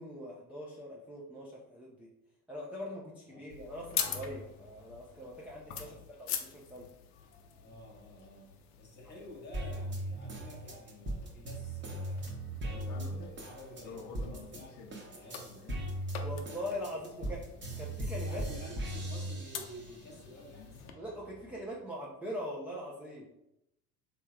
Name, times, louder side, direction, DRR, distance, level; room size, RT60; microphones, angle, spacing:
voice 1, 0.0-2.1 2.5-6.9 16.2-17.4 17.8-18.4 21.0-23.3, equal, 5° right, -4 dB, 0.4 m, -42 dB
sound 1, 3.5-20.9, left 8 dB, 75° left, 0.6 m, -45 dB
voice 2, 7.6-8.5 8.8-12.3 12.6-16.0 16.7-16.9 17.5-18.0 18.2-21.0, left 1 dB, 25° left, -1 dB, 1.2 m, -51 dB
sound 2, 9.5-14.6 14.9-20.1 20.6-21.5, right 1 dB, 25° right, 0.9 m, -38 dB
3.3 x 3.1 x 2.2 m, 0.84 s
hypercardioid pair, 80°, 44 cm